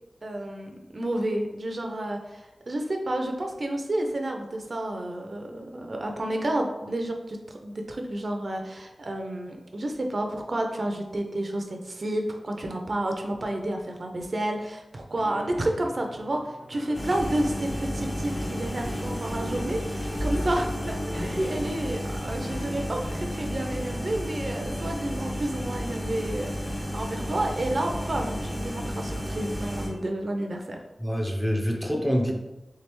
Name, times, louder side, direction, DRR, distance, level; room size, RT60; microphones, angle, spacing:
voice 1, 0.2-30.8, right 1 dB, 50° right, 3 dB, 0.4 m, -30 dB
sound 1, 15.2-23.4, left 1 dB, 60° left, 0.7 m, -41 dB
sound 2, 16.9-29.9, equal, 30° left, 1.1 m, -32 dB
voice 2, 21.2-21.6 31.0-32.3, equal, 10° left, 1 dB, 0.6 m, -26 dB
3.3 x 3.3 x 3.0 m, 1.0 s
wide cardioid pair, 90°, 0 cm